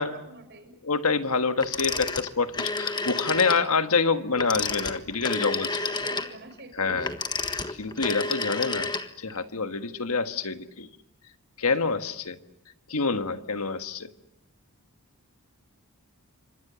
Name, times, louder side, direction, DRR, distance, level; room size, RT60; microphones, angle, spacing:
voice 1, 0.0-0.8 5.8-7.0, right 2 dB, 50° right, 6 dB, 6.2 m, -46 dB
voice 2, 0.8-5.8 6.8-7.1 7.8-8.9 9.2-10.9 11.6-12.4 12.9-14.1, left 4 dB, 75° left, 9 dB, 1.6 m, -26 dB
Telephone, 1.6-3.7 4.3-9.4, left 3 dB, 20° left, 1.4 m, -30 dB
29.0 x 26.0 x 7.0 m, 0.83 s
head